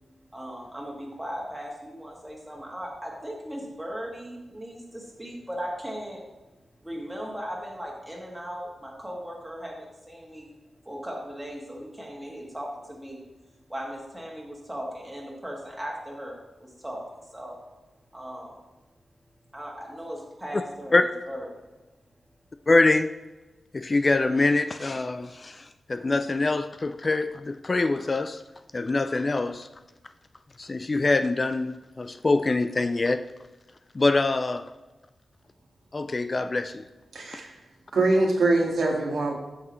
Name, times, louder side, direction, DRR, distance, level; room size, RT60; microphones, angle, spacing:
voice 1, 0.3-6.2 6.8-10.5 10.9-13.2 13.7-17.6 18.1-18.6 19.5-20.9 21.3-21.5, equal, 10° right, -3 dB, 2.0 m, -37 dB
voice 2, 22.7-23.1 23.7-28.4 28.7-29.7 30.6-33.2 33.9-34.7 35.9-36.8, left 2 dB, 30° left, 10 dB, 0.3 m, -24 dB
voice 3, 37.1-37.5 37.9-39.3, right 2 dB, 90° right, -1 dB, 1.9 m, -23 dB
13.0 x 6.0 x 3.1 m, 1.2 s
wide cardioid pair, 145°, 0 cm